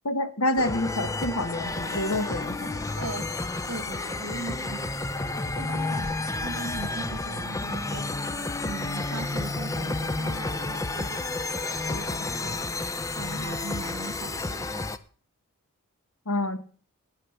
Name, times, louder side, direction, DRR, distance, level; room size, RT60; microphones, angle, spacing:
voice 1, 0.0-2.9 16.3-16.6, left 1 dB, 75° left, 12 dB, 1.2 m, -28 dB
sound 1, 0.6-15.0, left 2 dB, 15° left, 0.5 m, -31 dB
voice 2, 3.0-3.3 3.7-5.1 5.5-8.1 8.6-12.6 13.1-14.7, right 3 dB, 80° right, 14 dB, 1.2 m, -39 dB
sound 2, 4.6-9.4, right 2 dB, 45° right, 2.0 m, -46 dB
11.5 x 9.3 x 5.5 m, 0.43 s
head